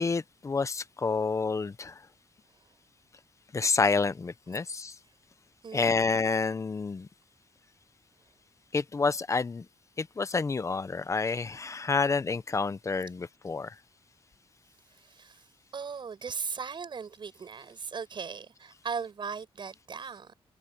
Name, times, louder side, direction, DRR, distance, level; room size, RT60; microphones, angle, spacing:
voice 1, 0.0-1.9 3.5-4.9 5.7-7.1 8.7-9.6 10.0-13.7, left 4 dB, 30° left, 0.8 m, -28 dB
voice 2, 5.6-6.0 14.9-15.5 15.7-20.3, right 6 dB, 50° right, 7.8 m, -38 dB
wide cardioid pair, 130°, 10 cm